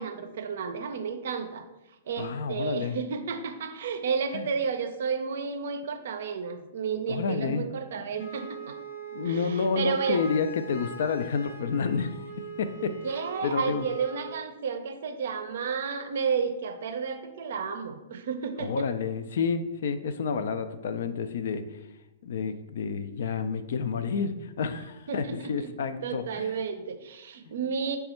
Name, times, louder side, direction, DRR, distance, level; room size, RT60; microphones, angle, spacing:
voice 1, 0.0-1.6 2.1-8.8 9.2-10.2 13.0-18.9 25.1-25.5 26.0-28.0, right 6 dB, 60° right, 7 dB, 0.5 m, -32 dB
voice 2, 2.2-3.0 4.3-4.5 7.1-7.7 9.1-12.2 12.6-13.0 13.4-13.9 18.6-21.8 22.2-26.5, left 5 dB, 60° left, 10 dB, 0.3 m, -29 dB
Wind instrument woodwind instrument, 8.1-14.4, right 5 dB, 80° left, 1.1 m, -42 dB
4.0 x 2.3 x 4.2 m, 0.98 s
figure-of-eight pair, 110°, 0 cm